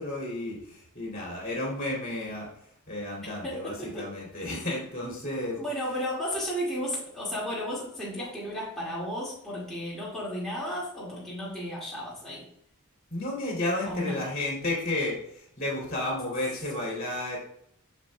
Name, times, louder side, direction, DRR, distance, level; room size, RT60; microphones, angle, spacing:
voice 1, 0.0-2.5 2.9-5.6 13.1-17.4, left 1 dB, 40° left, -3 dB, 2.5 m, -32 dB
voice 2, 3.4-4.0 5.6-12.4 13.9-14.2, equal, ahead, -8 dB, 1.9 m, -33 dB
7.3 x 6.5 x 2.2 m, 0.70 s
head